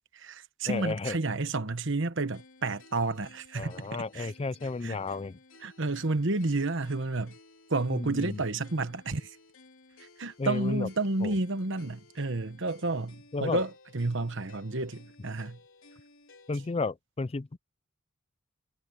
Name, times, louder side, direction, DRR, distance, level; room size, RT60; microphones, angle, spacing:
voice 1, 0.1-4.3 4.8-5.0 5.6-7.3 7.7-9.4 10.0-15.6, right 2 dB, 60° right, 1.2 m, -31 dB
voice 2, 0.7-1.2 3.6-5.4 7.9-8.4 10.4-10.9 11.2-11.3 13.3-13.6 16.5-17.6, left 3 dB, 30° left, 0.4 m, -33 dB
sound 1, 2.3-16.8, left 3 dB, 70° left, 3.5 m, -56 dB
head